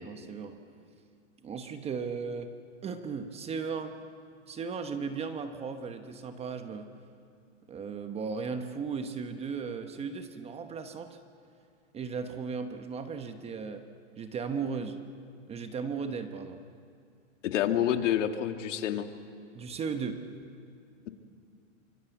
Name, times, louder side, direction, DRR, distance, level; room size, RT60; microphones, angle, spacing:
voice 1, 0.0-0.6 1.4-2.5 2.8-4.0 4.5-6.9 7.7-11.2 11.9-13.8 14.2-15.0 15.5-16.6 19.5-20.2, right 5 dB, 15° right, 8 dB, 1.0 m, -36 dB
voice 2, 17.4-19.1, left 10 dB, 65° left, 6 dB, 2.1 m, -28 dB
25.5 x 25.5 x 8.1 m, 2.4 s
hypercardioid pair, 145°, 40 cm